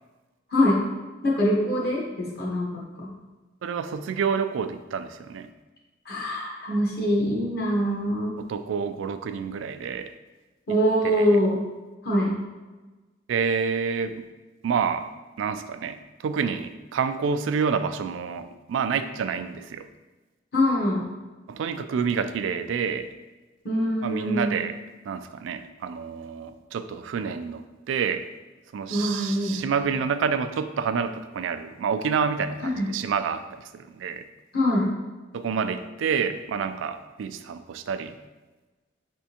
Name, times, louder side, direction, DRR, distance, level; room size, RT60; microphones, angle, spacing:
voice 1, 1.2-3.1 6.1-8.3 10.7-11.6 12.0-12.4 20.5-21.1 23.6-24.6 28.9-29.6 32.6-32.9 34.5-34.9, equal, 55° left, -3 dB, 1.0 m, -24 dB
voice 2, 3.6-5.5 8.4-10.1 11.2-11.3 13.3-14.2 14.6-15.1 15.4-16.0 16.2-19.9 21.5-23.1 24.0-24.8 25.1-28.2 28.7-33.4 33.7-34.3 35.3-38.1, right 6 dB, 90° right, 10 dB, 0.3 m, -28 dB
5.1 x 3.5 x 2.8 m, 1.2 s
head